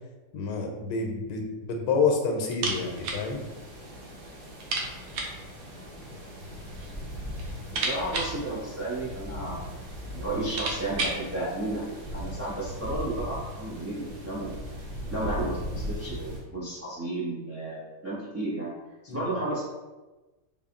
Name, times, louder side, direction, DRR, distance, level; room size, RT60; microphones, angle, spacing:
voice 1, 0.3-3.4 19.1-19.2, left 4 dB, 85° left, 2 dB, 1.3 m, -28 dB
sound 1, 2.5-3.3 3.5-3.6 4.0-4.1 4.6-5.4 6.4-7.0 7.3-9.3 10.0-10.1 10.3-11.3, right 3 dB, 80° right, 1.3 m, -33 dB
sound 2, 2.7-16.4, equal, 55° right, 1.1 m, -39 dB
voice 2, 7.7-9.8 10.1-11.8 12.1-14.5 15.1-18.7 19.0-19.6, right 2 dB, 20° right, -8 dB, 0.4 m, -33 dB
4.0 x 2.0 x 3.6 m, 1.1 s
omnidirectional pair, 1.9 m